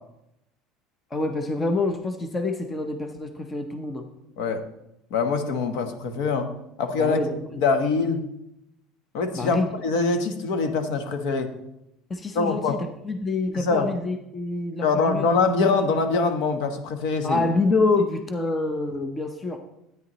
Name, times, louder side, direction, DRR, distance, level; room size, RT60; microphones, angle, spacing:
voice 1, 1.1-4.1 7.0-7.6 9.3-9.7 12.1-15.3 17.2-19.6, left 3 dB, 15° left, 6 dB, 0.6 m, -26 dB
voice 2, 5.1-6.5 6.8-7.2 7.6-8.2 9.1-11.5 12.3-12.8 13.5-13.9 14.8-17.4, left 4 dB, 65° left, 7 dB, 1.1 m, -24 dB
12.5 x 9.3 x 3.0 m, 0.83 s
cardioid pair, 175°, 0 cm